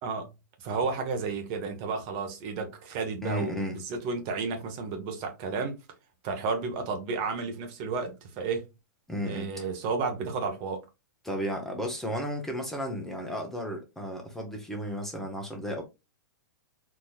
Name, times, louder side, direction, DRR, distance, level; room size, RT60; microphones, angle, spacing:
voice 1, 0.6-5.8 6.2-8.7 9.2-10.8, right 4 dB, 45° right, 1.2 m, -32 dB
voice 2, 3.2-3.7 9.1-9.5 11.2-15.8, equal, 5° left, 1.0 m, -33 dB
4.2 x 3.0 x 2.3 m
hypercardioid pair, 120°, 10 cm